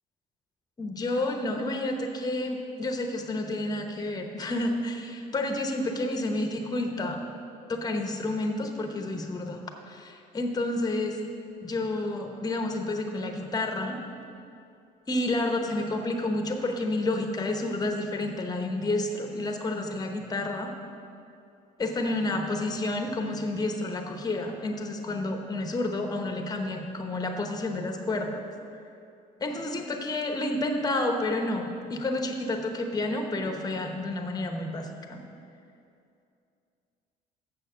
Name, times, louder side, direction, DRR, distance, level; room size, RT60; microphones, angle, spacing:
voice 1, 0.8-7.2 7.7-11.2 11.6-14.0 15.1-20.7 21.8-28.4 29.4-35.2, left 2 dB, 25° left, 4 dB, 0.9 m, -30 dB
7.1 x 6.4 x 6.7 m, 2.6 s
cardioid pair, 110°, 17 cm